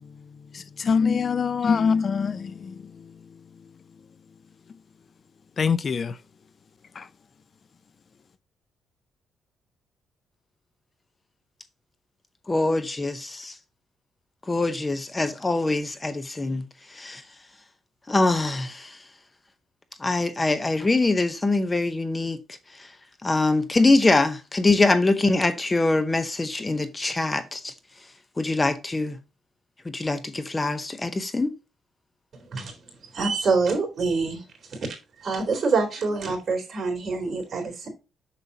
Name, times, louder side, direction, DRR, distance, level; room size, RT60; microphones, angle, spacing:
voice 1, 0.0-3.2 5.6-6.2 6.9-7.1, left 6 dB, 45° left, 0.5 m, -25 dB
voice 2, 12.5-13.6 14.5-17.2 18.1-19.0 20.0-22.4 22.7-22.9 23.2-27.7 28.4-29.2 29.8-31.5, left 2 dB, 20° left, 0.8 m, -24 dB
voice 3, 32.3-32.8 33.1-34.4 34.7-34.8 35.2-37.9, right 4 dB, 45° right, 3.6 m, -26 dB
7.1 x 6.8 x 2.8 m
cardioid pair, 90°, 0 cm